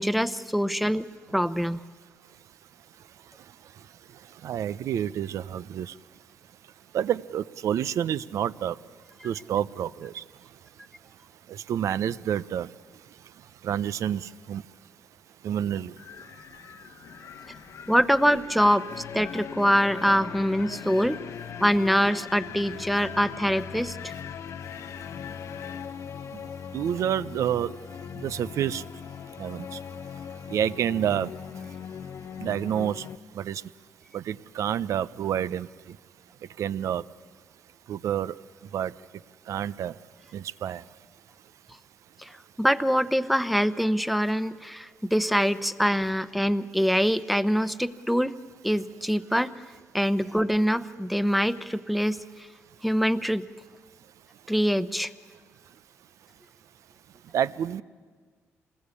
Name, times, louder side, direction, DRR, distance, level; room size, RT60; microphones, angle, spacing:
voice 1, 0.0-1.8 17.9-21.2 21.6-24.0 42.2-42.3 42.6-48.3 48.6-49.5 49.9-52.2 52.8-53.4 54.5-55.1, equal, ahead, 12 dB, 0.9 m, -24 dB
voice 2, 4.4-5.9 6.9-8.7 9.2-10.2 11.5-12.7 13.6-14.6 15.4-15.9 26.7-27.7 28.2-28.8 29.4-29.6 30.5-31.3 32.4-33.0 33.4-33.6 34.1-35.7 36.6-37.0 37.9-38.3 38.7-38.9 39.5-39.9 40.3-40.8 57.3-57.8, right 10 dB, 70° right, 16 dB, 0.6 m, -28 dB
Wind, 16.0-25.9, left 8 dB, 75° left, 1.2 m, -44 dB
sound 1, 18.9-33.2, left 7 dB, 60° left, 0.7 m, -40 dB
26.5 x 20.5 x 8.4 m, 1.5 s
supercardioid pair, 70°, 5 cm